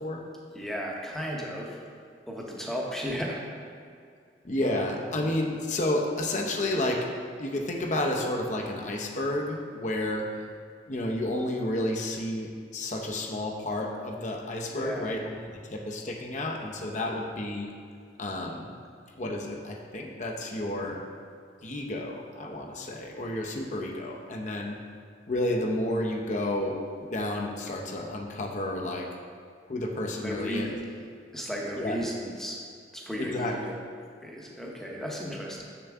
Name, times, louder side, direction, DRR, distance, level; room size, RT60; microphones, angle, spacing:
voice 1, 0.5-1.8 2.3-3.4 14.7-15.1 30.2-30.8 31.3-32.6 32.9-33.8 34.2-35.6, equal, ahead, -2 dB, 0.8 m, -34 dB
voice 2, 4.4-7.1 7.4-10.3 10.9-17.7 18.2-18.7 19.2-21.0 21.6-24.8 25.3-29.1 29.7-30.7 31.8-32.0 33.2-33.7, left 1 dB, 40° left, 1 dB, 0.7 m, -31 dB
6.9 x 6.7 x 3.5 m, 2.3 s
head